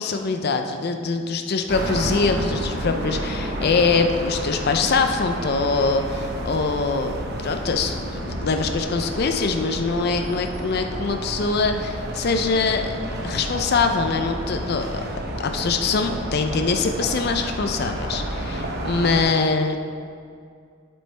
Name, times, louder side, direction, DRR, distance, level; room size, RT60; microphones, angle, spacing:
voice 1, 0.0-13.0 13.2-15.0 15.4-19.8, left 4 dB, 55° left, 6 dB, 0.5 m, -23 dB
sound 1, 1.7-19.2, right 1 dB, 55° right, 1.0 m, -30 dB
8.2 x 7.7 x 3.3 m, 2.2 s
head